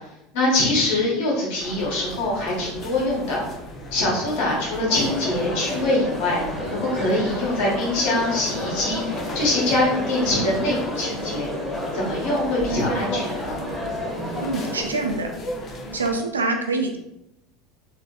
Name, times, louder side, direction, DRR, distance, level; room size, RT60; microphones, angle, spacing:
voice 1, 0.3-3.4 3.9-11.5 11.9-13.6, left 2 dB, 60° left, -4 dB, 1.4 m, -24 dB
sound 1, 1.6-16.2, left 1 dB, 35° left, 0.7 m, -35 dB
Crowd, 4.9-14.8, equal, 15° left, 1.3 m, -31 dB
voice 2, 14.4-15.3 15.9-17.0, right 3 dB, 80° right, 4 dB, 0.3 m, -25 dB
3.5 x 3.5 x 2.3 m, 0.84 s
figure-of-eight pair, 70°, 0 cm